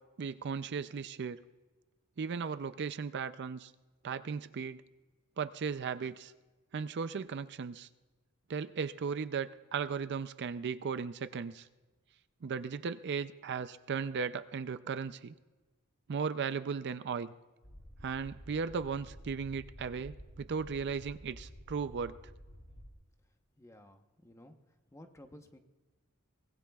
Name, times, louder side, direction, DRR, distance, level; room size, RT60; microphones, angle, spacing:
voice 1, 0.2-1.4 2.2-3.7 4.0-4.8 5.4-6.3 6.7-7.9 8.5-11.7 12.4-15.3 16.1-17.3 18.0-22.2, right 6 dB, 50° right, 12 dB, 0.4 m, -36 dB
sound 1, 17.6-22.9, equal, 45° left, 2.9 m, -51 dB
voice 2, 23.6-24.6 24.9-25.6, left 1 dB, 15° left, 5 dB, 0.9 m, -54 dB
23.5 x 20.0 x 2.4 m, 1.2 s
head